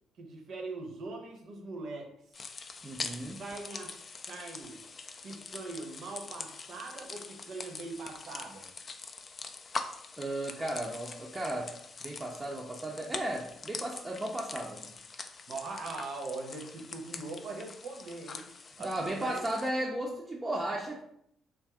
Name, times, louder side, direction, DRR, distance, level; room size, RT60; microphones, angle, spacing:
voice 1, 0.2-2.1 3.4-4.0 4.2-4.8 5.2-8.7 15.5-18.4 18.8-19.4, right 3 dB, 55° right, 2 dB, 0.7 m, -41 dB
sound 1, 2.3-19.7, left 4 dB, 40° left, 0.3 m, -44 dB
voice 2, 2.8-3.4 10.2-11.7 12.0-14.9 18.8-21.0, right 1 dB, 20° right, -2 dB, 0.5 m, -35 dB
2.5 x 2.4 x 3.4 m, 0.74 s
figure-of-eight pair, 45°, 0 cm